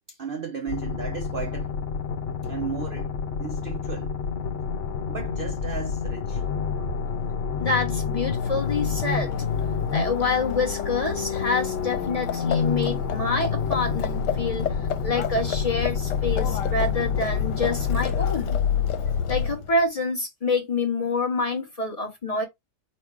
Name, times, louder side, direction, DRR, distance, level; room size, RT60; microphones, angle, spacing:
voice 1, 0.1-1.7 2.4-3.1 3.4-4.1 5.1-6.4, right 6 dB, 70° right, 0.5 m, -34 dB
sound 1, 0.7-18.7, left 6 dB, 55° left, 1.0 m, -29 dB
voice 2, 7.6-9.3 9.9-14.8 15.0-18.6 19.3-22.4, left 3 dB, 25° left, 1.1 m, -27 dB
Livestock farm animals working animals, 8.2-19.8, left 8 dB, 85° left, 1.3 m, -29 dB
4.3 x 2.6 x 4.6 m
omnidirectional pair, 1.8 m